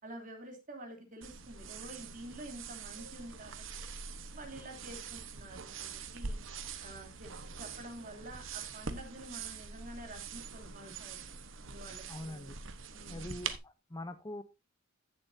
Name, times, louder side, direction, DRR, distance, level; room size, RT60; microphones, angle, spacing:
voice 1, 0.0-3.8 4.3-6.4 6.8-12.0 12.9-13.3, right 1 dB, 40° right, 3 dB, 3.2 m, -49 dB
sound 1, 1.2-13.6, right 5 dB, 70° right, 1.2 m, -44 dB
voice 2, 12.1-12.6 13.1-14.4, left 1 dB, 20° left, 12 dB, 0.7 m, -43 dB
15.5 x 7.1 x 2.7 m, 0.25 s
head